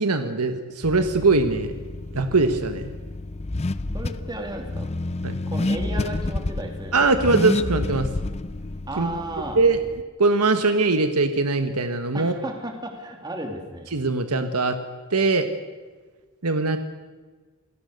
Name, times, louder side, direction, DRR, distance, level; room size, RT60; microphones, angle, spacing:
voice 1, 0.0-1.7 2.1-2.9 5.2-5.4 6.9-8.1 9.0-9.1 9.6-9.8 10.2-12.3 13.9-14.8 15.1-15.5 16.4-16.8, right 3 dB, 90° right, 8 dB, 1.5 m, -21 dB
Car / Accelerating revving vroom, 0.8-10.0, left 2 dB, 30° left, 0.6 m, -30 dB
voice 2, 3.9-4.9 5.5-7.0 8.9-9.6 12.1-13.9, right 1 dB, 20° right, 3 dB, 3.1 m, -33 dB
28.0 x 17.0 x 6.7 m, 1.4 s
head